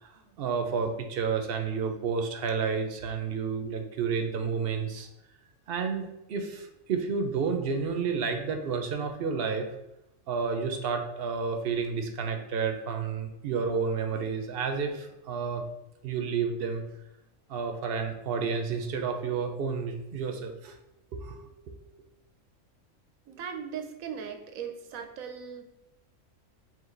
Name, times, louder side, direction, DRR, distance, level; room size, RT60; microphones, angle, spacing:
voice 1, 0.0-5.1 5.7-9.7 10.3-15.6 16.0-16.8 17.5-20.8 21.1-21.4, right 5 dB, 60° right, 5 dB, 0.6 m, -30 dB
voice 2, 23.3-25.6, right 7 dB, 90° right, 5 dB, 1.1 m, -38 dB
4.6 x 2.5 x 3.8 m, 0.90 s
omnidirectional pair, 1.4 m